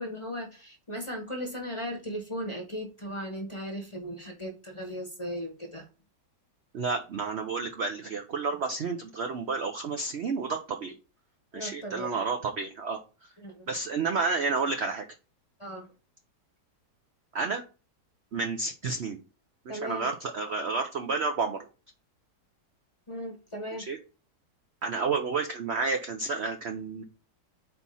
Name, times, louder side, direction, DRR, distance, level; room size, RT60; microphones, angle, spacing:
voice 1, 0.0-5.8 11.5-12.2 13.4-13.7 15.6-15.9 19.7-20.1 23.1-23.8, equal, 20° left, 1 dB, 1.0 m, -37 dB
voice 2, 6.7-10.9 11.5-13.3 13.7-15.1 17.3-17.6 18.3-19.2 19.7-21.7 23.9-24.0 24.8-27.0, right 4 dB, 60° right, 4 dB, 0.7 m, -30 dB
4.5 x 4.1 x 5.5 m, 0.34 s
omnidirectional pair, 1.9 m